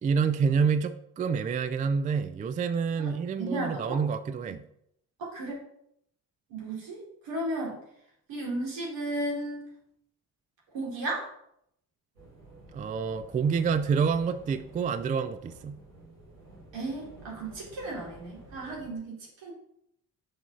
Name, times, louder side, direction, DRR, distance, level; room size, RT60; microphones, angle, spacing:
voice 1, 0.0-4.6 12.7-15.8, right 6 dB, 20° right, 12 dB, 0.3 m, -28 dB
voice 2, 3.4-4.0 4.5-4.6 5.2-5.6 6.5-7.8 8.3-9.7 10.7-11.3 16.7-19.5, right 1 dB, 60° right, -3 dB, 3.0 m, -34 dB
sound 1, 12.1-18.9, right 2 dB, 90° right, 1.8 m, -51 dB
6.1 x 4.9 x 5.5 m, 0.75 s
figure-of-eight pair, 40°, 50 cm